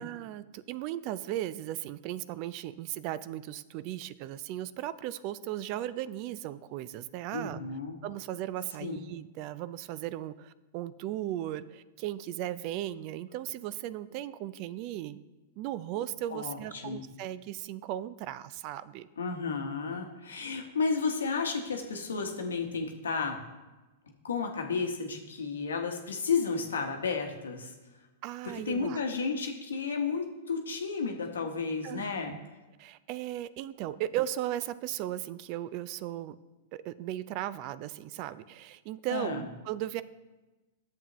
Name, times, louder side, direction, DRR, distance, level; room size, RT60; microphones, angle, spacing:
voice 1, 0.0-7.6 8.0-15.2 15.6-19.1 28.2-29.1 31.8-32.4 32.8-36.4 36.7-40.0, right 13 dB, 50° right, 16 dB, 0.3 m, -36 dB
voice 2, 7.3-8.0 8.8-9.0 16.3-17.0 19.2-23.4 24.2-27.7 28.7-32.3 39.1-39.5, left 5 dB, 85° left, 4 dB, 1.1 m, -32 dB
10.5 x 7.3 x 3.0 m, 1.1 s
hypercardioid pair, 115°, 0 cm